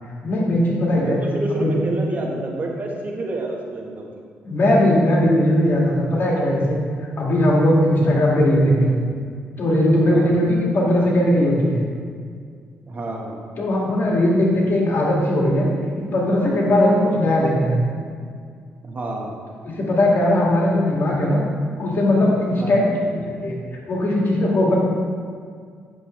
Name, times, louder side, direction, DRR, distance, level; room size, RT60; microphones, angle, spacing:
voice 1, 0.2-1.2 1.5-1.7 4.4-6.8 7.2-9.0 9.6-11.8 13.6-15.7 16.0-17.8 19.7-21.4 21.8-23.6 23.9-24.7, left 1 dB, 50° left, -3 dB, 1.9 m, -19 dB
voice 2, 0.9-4.1 8.0-8.2 10.0-10.3 12.8-13.4 18.8-19.3 22.5-23.0, right 2 dB, 40° right, 0 dB, 1.2 m, -29 dB
8.6 x 6.8 x 3.1 m, 2.1 s
cardioid pair, 100°, 4 cm